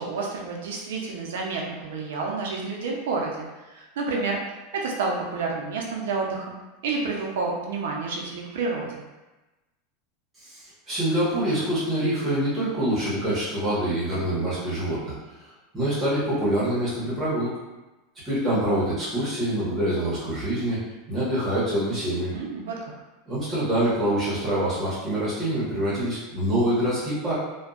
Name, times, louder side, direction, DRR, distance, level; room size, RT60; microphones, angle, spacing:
voice 1, 0.0-4.4 4.7-6.6 6.8-9.0 22.3-22.8, right 4 dB, 90° right, -1 dB, 0.5 m, -29 dB
voice 2, 10.4-15.1 15.4-17.6 18.2-22.4 23.3-27.3, right 1 dB, 15° right, -10 dB, 1.0 m, -25 dB
2.6 x 2.2 x 2.4 m, 1.1 s
supercardioid pair, 160°, 0 cm